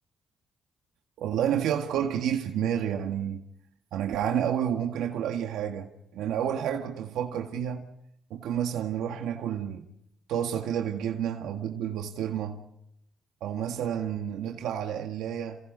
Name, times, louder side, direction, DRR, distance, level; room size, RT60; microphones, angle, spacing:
voice 1, 1.2-3.4 3.9-7.8 8.3-9.9 10.3-12.6 13.4-15.6, right 9 dB, 85° right, 1.8 m, -30 dB
29.5 x 28.0 x 4.1 m
cardioid pair, 90°, 0 cm